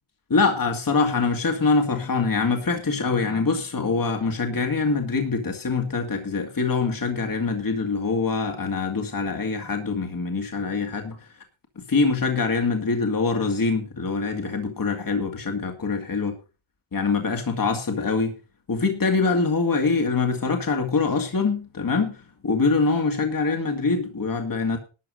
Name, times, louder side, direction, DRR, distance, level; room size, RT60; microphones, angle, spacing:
voice 1, 0.3-11.4 11.9-16.4 16.9-18.3 18.7-24.8, left 4 dB, 45° left, 2.1 m, -24 dB
12.5 x 6.8 x 6.4 m
wide cardioid pair, 85°, 47 cm